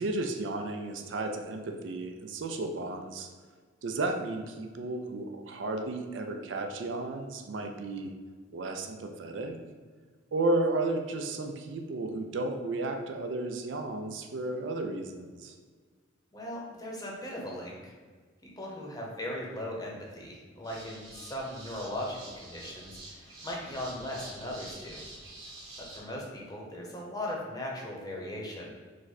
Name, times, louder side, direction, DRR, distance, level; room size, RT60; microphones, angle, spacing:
voice 1, 0.0-3.3 3.8-8.1 8.5-9.6 10.3-15.6, right 2 dB, 65° right, 4 dB, 0.4 m, -33 dB
voice 2, 16.3-17.9 18.4-25.0 25.8-28.7, left 1 dB, 20° left, -2 dB, 0.8 m, -38 dB
sound 1, 20.6-26.0, right 2 dB, 85° right, 1.1 m, -47 dB
5.0 x 2.2 x 4.0 m, 1.5 s
head